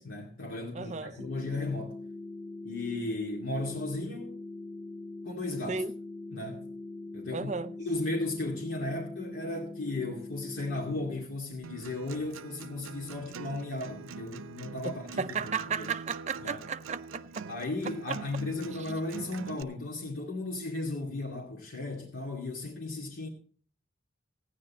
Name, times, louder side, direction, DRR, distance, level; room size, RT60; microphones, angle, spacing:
voice 1, 0.0-2.0 2.6-4.4 5.2-5.8 6.3-6.7 7.1-7.5 7.8-15.5 15.8-15.9 16.4-16.6 17.5-23.3, left 2 dB, 85° left, 2.4 m, -35 dB
voice 2, 0.7-1.1 5.7-5.9 7.3-7.7 14.8-17.4 18.1-18.2, right 5 dB, 35° right, 0.5 m, -34 dB
sound 1, 1.2-11.2, left 2 dB, ahead, 7.5 m, -42 dB
Acoustic guitar, 11.6-19.6, right 5 dB, 85° right, 0.5 m, -44 dB
15.0 x 9.6 x 4.2 m
head